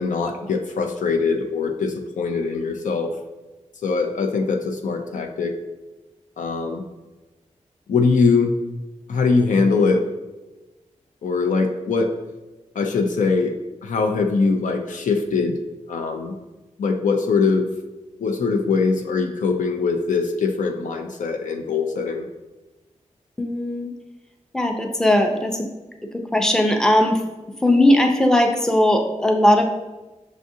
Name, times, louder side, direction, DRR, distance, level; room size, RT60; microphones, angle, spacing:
voice 1, 0.0-3.1 3.8-5.5 6.4-6.8 7.9-8.5 9.1-10.0 11.2-12.1 12.8-13.5 13.8-15.6 15.9-16.4 16.8-17.7 18.2-22.3, left 4 dB, 80° left, 4 dB, 0.4 m, -22 dB
voice 2, 23.4-23.9 24.5-25.7 26.3-27.2 27.6-29.7, left 1 dB, 5° left, 4 dB, 0.5 m, -18 dB
6.2 x 2.5 x 2.6 m, 1.1 s
cardioid pair, 70°, 13 cm